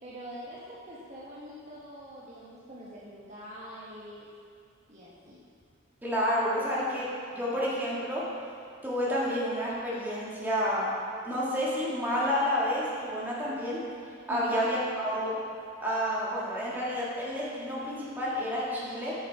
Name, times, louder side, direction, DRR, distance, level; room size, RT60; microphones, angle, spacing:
voice 1, 0.0-4.3 4.9-5.4 14.3-14.7, equal, 40° right, -7 dB, 1.1 m, -44 dB
voice 2, 6.0-8.2 8.8-10.9 11.2-13.8 14.3-15.3 15.8-19.1, equal, 10° right, -8 dB, 1.8 m, -30 dB
8.0 x 6.4 x 4.6 m, 2.3 s
head